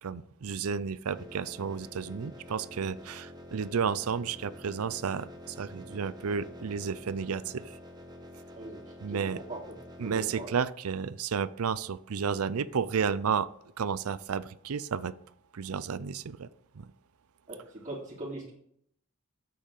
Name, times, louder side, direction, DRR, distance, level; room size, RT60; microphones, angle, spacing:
voice 1, 0.0-7.6 9.0-9.4 10.0-13.5 13.8-15.1 15.5-16.5 16.8-16.9, right 6 dB, 85° right, 17 dB, 0.5 m, -32 dB
sound 1, 1.1-10.4, left 1 dB, 20° right, 1.3 m, -48 dB
voice 2, 9.1-10.5 17.5-18.5, right 2 dB, 35° right, -5 dB, 3.1 m, -41 dB
8.8 x 7.9 x 6.6 m, 0.70 s
head